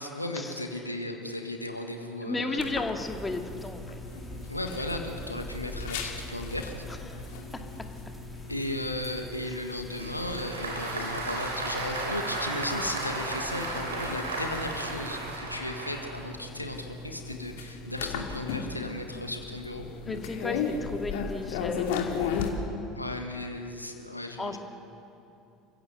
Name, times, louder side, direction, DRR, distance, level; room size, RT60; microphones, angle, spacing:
voice 1, 0.0-2.8 4.5-6.7 8.5-19.9 22.9-24.6, left 1 dB, 90° left, 4 dB, 1.7 m, -35 dB
voice 2, 2.2-4.0 7.1-7.2 20.1-22.4 24.4-24.6, left 2 dB, 15° left, 5 dB, 2.1 m, -34 dB
sound 1, 2.6-22.5, left 6 dB, 60° left, 2.7 m, -37 dB
sound 2, 3.0-15.4, equal, 10° right, 3.4 m, -46 dB
Applause, 10.0-16.3, right 2 dB, 80° right, 3.6 m, -34 dB
29.0 x 16.0 x 8.1 m, 2.8 s
figure-of-eight pair, 70°, 0 cm